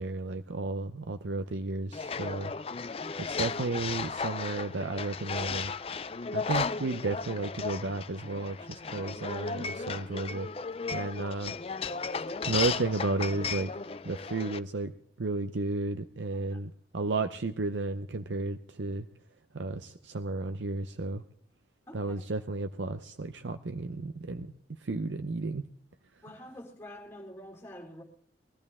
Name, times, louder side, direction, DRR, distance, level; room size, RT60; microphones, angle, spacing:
voice 1, 0.0-2.5 3.2-5.7 6.3-10.5 10.9-11.5 12.5-13.7 14.0-14.9 15.2-19.1 19.5-21.2 21.9-24.5 24.8-25.6, right 3 dB, 90° right, 8 dB, 0.7 m, -33 dB
sound 1, 1.9-14.6, left 5 dB, 30° left, 0.5 m, -35 dB
voice 2, 21.9-22.3 26.2-28.0, left 1 dB, 15° left, -2 dB, 4.1 m, -47 dB
22.0 x 14.0 x 3.6 m, 0.64 s
head